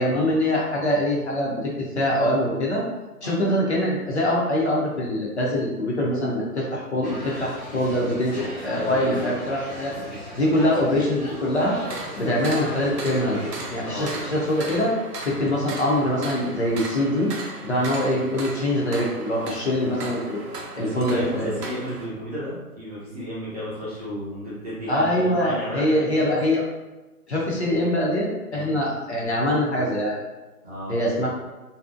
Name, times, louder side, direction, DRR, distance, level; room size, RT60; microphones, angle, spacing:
voice 1, 0.0-2.8 3.2-9.9 10.4-11.8 12.2-14.9 15.2-17.3 17.6-20.4 20.8-21.6 24.9-26.6 27.3-30.1 30.9-31.3, left 1 dB, 45° left, -4 dB, 0.5 m, -23 dB
sound 1, 7.0-14.8, left 1 dB, 5° left, 0.8 m, -37 dB
voice 2, 8.7-9.3 9.9-10.2 13.8-14.1 19.7-20.0 21.0-26.4 28.5-28.7 30.6-31.3, equal, 25° right, -10 dB, 0.7 m, -33 dB
sound 2, 11.7-22.1, right 3 dB, 85° right, 0.6 m, -37 dB
2.6 x 2.0 x 2.4 m, 1.1 s
figure-of-eight pair, 145°, 47 cm